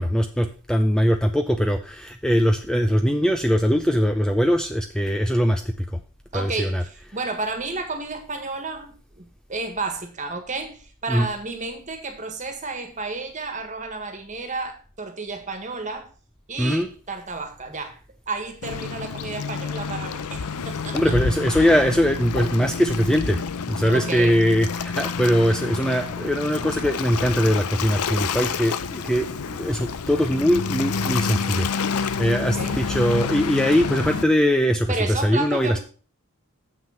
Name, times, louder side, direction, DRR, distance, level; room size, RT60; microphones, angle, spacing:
voice 1, 0.0-5.9 6.3-6.8 11.1-11.3 16.6-16.9 20.9-35.8, equal, 5° left, 0.4 m, -21 dB
voice 2, 6.3-9.2 9.5-16.1 16.5-18.0 18.3-21.1 23.9-24.4 32.4-32.8 34.9-35.8, right 3 dB, 35° right, 1.6 m, -31 dB
Waves surf, 18.6-34.2, left 5 dB, 90° left, 0.6 m, -29 dB
7.4 x 6.2 x 5.6 m
head